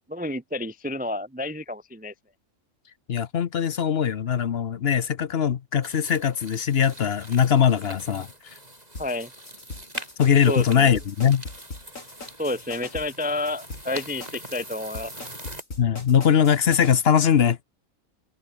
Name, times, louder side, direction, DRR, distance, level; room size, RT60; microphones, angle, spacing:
voice 1, 0.1-2.1 9.0-9.3 10.5-11.0 12.4-15.1, left 1 dB, 10° right, 0.5 m, -30 dB
voice 2, 3.1-8.3 10.2-11.4 15.8-17.6, left 8 dB, 55° left, 1.0 m, -21 dB
sound 1, 5.8-15.6, right 1 dB, 30° right, 6.5 m, -43 dB
sound 2, 9.0-16.9, left 2 dB, 75° left, 5.5 m, -40 dB
open air
omnidirectional pair, 1.4 m